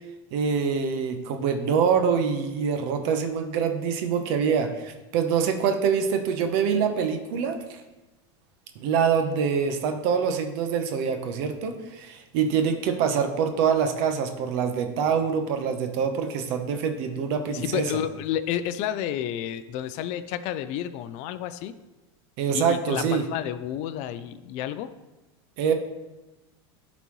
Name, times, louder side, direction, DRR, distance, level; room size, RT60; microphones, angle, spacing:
voice 1, 0.3-7.8 8.8-17.9 22.4-23.2 25.6-25.7, right 6 dB, 60° right, 6 dB, 0.9 m, -25 dB
voice 2, 17.5-21.7 22.5-24.9, left 11 dB, 50° left, 12 dB, 0.4 m, -30 dB
11.0 x 4.1 x 3.1 m, 1.1 s
supercardioid pair, 120°, 14 cm